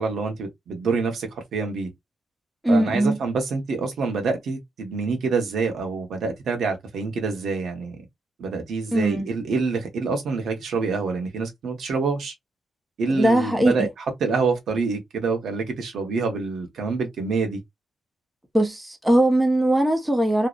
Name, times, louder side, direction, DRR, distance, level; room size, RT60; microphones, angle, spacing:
voice 1, 0.0-1.9 2.7-8.0 8.4-12.3 13.0-17.6, right 4 dB, 80° right, 0.9 m, -26 dB
voice 2, 2.6-3.2 8.9-9.3 13.1-13.9 18.5-20.5, right 1 dB, 10° right, 0.6 m, -20 dB
2.7 x 2.0 x 2.3 m
wide cardioid pair, 125°, 0 cm